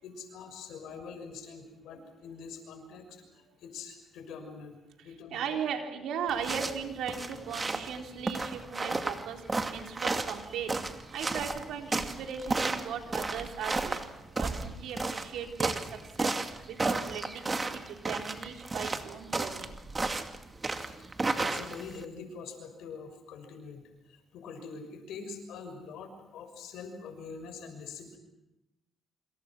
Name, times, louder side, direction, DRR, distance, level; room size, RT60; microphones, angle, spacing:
voice 1, 0.0-4.8 5.0-5.5 20.7-21.0 21.2-23.8 24.1-28.2, left 5 dB, 85° left, 6 dB, 6.4 m, -44 dB
voice 2, 5.0-16.3 16.7-19.7, right 7 dB, 80° right, 3 dB, 4.0 m, -38 dB
sound 1, 6.3-22.0, right 3 dB, 25° right, 2.3 m, -33 dB
27.0 x 26.5 x 6.2 m, 0.92 s
cardioid pair, 90°, 0 cm